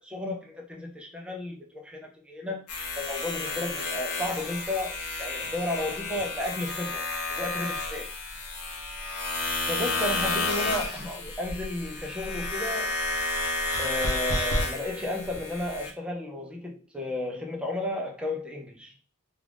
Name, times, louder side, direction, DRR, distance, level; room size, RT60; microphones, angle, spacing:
voice 1, 0.0-2.6 3.0-7.0 7.3-8.1 9.7-13.0 13.8-18.9, left 1 dB, 5° right, 0.5 m, -33 dB
sound 1, 2.7-15.9, left 2 dB, 85° left, 0.7 m, -31 dB
2.4 x 2.3 x 3.3 m
head